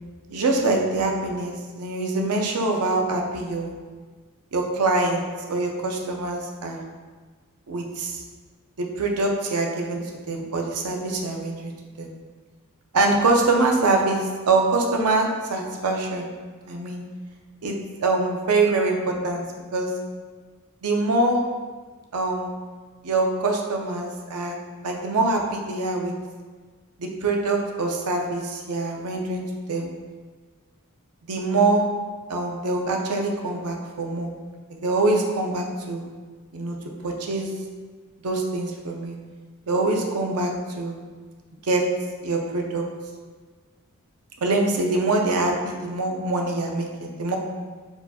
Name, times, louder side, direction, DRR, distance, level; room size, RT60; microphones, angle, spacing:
voice 1, 0.3-3.7 4.5-5.2 5.5-6.8 7.7-8.2 8.8-10.0 10.3-11.7 12.0-12.1 12.9-16.3 16.7-17.0 17.6-19.5 19.7-19.9 20.8-21.4 22.1-22.5 23.0-24.6 24.8-26.1 27.0-29.4 29.7-29.9 31.3-31.8 32.3-34.3 34.7-36.0 36.5-36.7 37.0-37.5 38.2-39.2 39.7-41.0 41.6-41.8 42.2-42.8 44.4-47.4, right 2 dB, 85° right, 2 dB, 0.6 m, -24 dB
4.6 x 2.3 x 4.1 m, 1.5 s
head